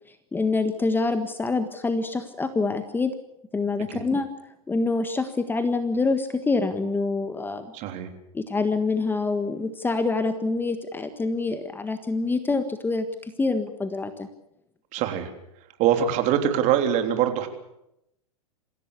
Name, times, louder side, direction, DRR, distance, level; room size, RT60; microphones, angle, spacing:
voice 1, 0.3-3.1 3.5-4.3 4.7-7.7 8.3-14.3, left 3 dB, 10° left, 9 dB, 1.5 m, -26 dB
voice 2, 7.7-8.1 14.9-15.3 15.8-17.5, right 9 dB, 40° right, 6 dB, 3.5 m, -23 dB
26.0 x 16.0 x 8.3 m, 0.83 s
hypercardioid pair, 110°, 19 cm